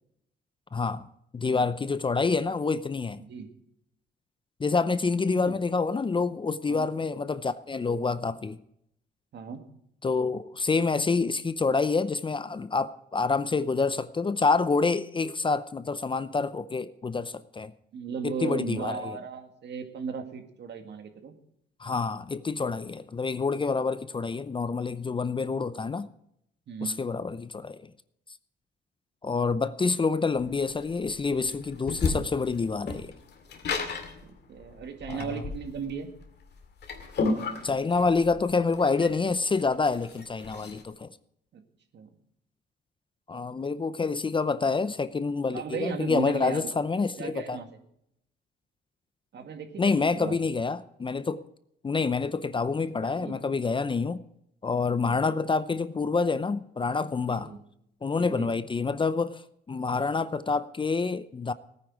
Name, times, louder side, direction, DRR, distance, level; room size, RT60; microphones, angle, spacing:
voice 1, 0.7-1.1 1.3-3.2 4.6-8.6 10.0-17.7 18.2-19.2 21.8-26.1 26.8-27.8 29.2-33.1 35.1-35.4 37.6-41.1 43.3-47.6 49.8-51.4 51.8-54.2 54.6-57.5 58.0-59.4 59.7-61.5, left 4 dB, 25° left, 0.6 m, -27 dB
voice 2, 17.9-21.3 26.7-27.0 34.2-36.1 41.5-41.6 41.9-42.1 45.5-46.7 47.2-47.7 49.3-50.4 53.0-53.4 55.0-55.2 57.3-57.6 58.1-58.5, right 6 dB, 60° right, 2.1 m, -36 dB
sound 1, 30.4-40.8, left 4 dB, 60° left, 2.2 m, -34 dB
17.5 x 9.8 x 4.8 m
cardioid pair, 90°, 20 cm